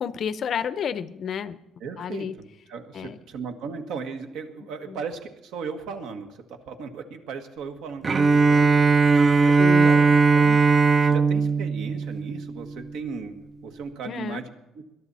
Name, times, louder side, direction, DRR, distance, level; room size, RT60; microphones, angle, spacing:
voice 1, 0.0-1.6 2.0-2.3 2.9-3.2 4.9-5.0 9.6-9.9 14.1-14.4, left 7 dB, 40° left, 15 dB, 0.6 m, -30 dB
voice 2, 1.8-10.1 10.3-13.3 13.6-14.8, right 5 dB, 70° right, 6 dB, 1.6 m, -37 dB
Bowed string instrument, 8.0-13.0, right 4 dB, 25° right, 0.5 m, -19 dB
21.0 x 11.5 x 4.2 m, 0.93 s
cardioid pair, 155°, 0 cm